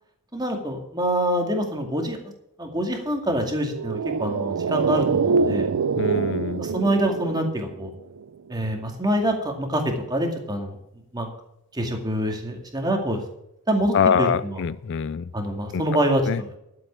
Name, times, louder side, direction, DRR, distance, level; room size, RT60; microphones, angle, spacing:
voice 1, 0.3-2.2 2.6-5.7 6.6-7.9 8.5-10.8 11.1-11.3 11.7-13.2 13.7-14.6 15.3-16.5, right 1 dB, 20° right, 3 dB, 2.3 m, -25 dB
sound 1, 3.7-8.2 8.5-8.6, right 5 dB, 85° right, 0.5 m, -25 dB
voice 2, 6.0-6.6 13.9-15.2 16.3-16.4, left 7 dB, 55° left, 17 dB, 0.4 m, -23 dB
12.0 x 7.8 x 6.3 m, 0.82 s
head